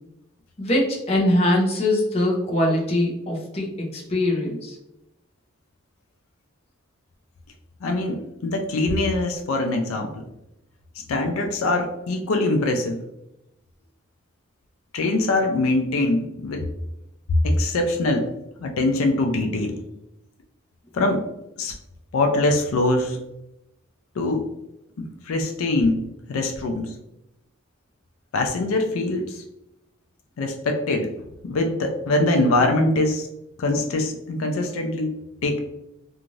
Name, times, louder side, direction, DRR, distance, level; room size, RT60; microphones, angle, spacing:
voice 1, 0.6-4.8, left 1 dB, 30° left, -2 dB, 0.6 m, -22 dB
voice 2, 7.8-10.2 11.1-13.0 14.9-16.7 17.3-18.3 18.6-19.8 20.9-21.3 21.6-21.7 22.1-23.2 24.2-24.5 25.2-26.0 26.3-26.9 28.3-29.4 30.4-31.1 31.4-33.3 33.6-35.2 35.4-35.6, left 2 dB, 75° left, 4 dB, 0.4 m, -23 dB
2.5 x 2.4 x 3.0 m, 0.88 s
head